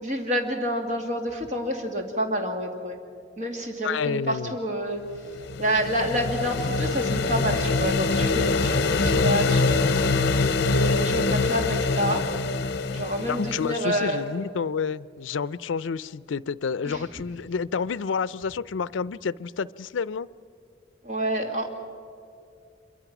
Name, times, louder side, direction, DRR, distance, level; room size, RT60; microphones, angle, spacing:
voice 1, 0.0-3.0 3.4-5.0 5.6-9.9 10.7-12.2 12.9-14.2 16.8-17.0 21.0-21.7, equal, 40° right, 3 dB, 2.4 m, -28 dB
voice 2, 3.8-4.5 13.3-20.3, left 5 dB, 80° left, 19 dB, 0.4 m, -29 dB
sound 1, 5.2-13.9, left 3 dB, 60° left, 0.8 m, -24 dB
26.5 x 23.5 x 6.0 m, 2.5 s
head